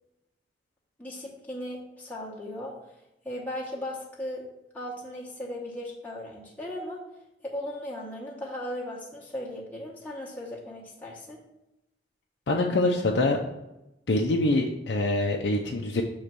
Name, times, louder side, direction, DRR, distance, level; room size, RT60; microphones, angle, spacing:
voice 1, 1.0-2.9 3.2-4.5 4.7-7.0 7.4-11.4, left 1 dB, 10° left, -5 dB, 1.0 m, -37 dB
voice 2, 12.5-13.4 14.1-16.0, left 2 dB, 70° left, 0 dB, 0.6 m, -24 dB
6.7 x 3.2 x 6.0 m, 0.92 s
head